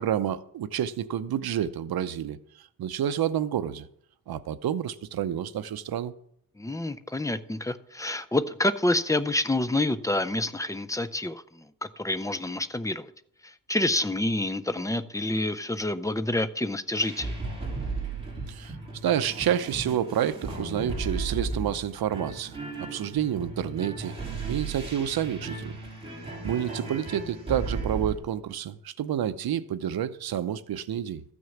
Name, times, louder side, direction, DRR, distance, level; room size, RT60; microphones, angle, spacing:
voice 1, 0.0-3.9 4.3-6.1 18.5-18.8 19.0-24.1 24.5-25.8 26.4-31.2, right 10 dB, 75° right, 0.7 m, -29 dB
voice 2, 6.6-11.6 12.0-13.1 13.4-17.3, left 1 dB, 10° left, 0.5 m, -28 dB
sound 1, 17.0-28.1, right 3 dB, 15° right, 3.5 m, -35 dB
13.5 x 6.3 x 7.2 m
wide cardioid pair, 145°, 37 cm